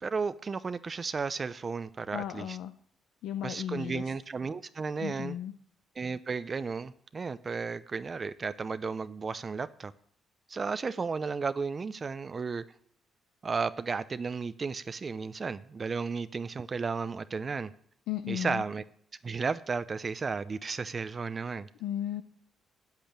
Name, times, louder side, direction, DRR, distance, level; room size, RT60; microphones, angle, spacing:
voice 1, 0.0-2.6 3.4-5.4 6.0-9.9 10.5-12.6 13.4-17.7 18.3-18.8 19.2-21.7, right 4 dB, 35° right, 0.5 m, -34 dB
voice 2, 2.1-2.7 3.2-4.0 5.0-5.5 18.1-18.6 21.8-22.2, left 11 dB, 90° left, 0.6 m, -35 dB
8.4 x 8.2 x 8.9 m
cardioid pair, 90°, 0 cm